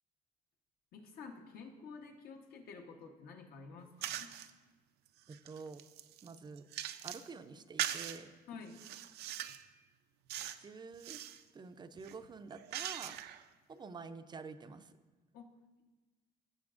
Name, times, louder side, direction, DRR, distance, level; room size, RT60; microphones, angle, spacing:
voice 1, 0.9-4.4 8.5-8.8 15.3-15.5, left 4 dB, 65° left, 4 dB, 1.1 m, -50 dB
sound 1, 4.0-4.5 5.1-7.3 7.8-8.2 8.7-9.7 10.3-10.6 10.9-11.4 12.0-13.4, right 12 dB, 75° right, 0.5 m, -41 dB
voice 2, 5.3-5.8 6.2-6.7 7.0-8.3 10.6-11.2 11.5-13.2 13.7-15.0, right 4 dB, 25° right, 10 dB, 0.5 m, -48 dB
15.5 x 6.8 x 2.5 m, 1.3 s
cardioid pair, 110°, 17 cm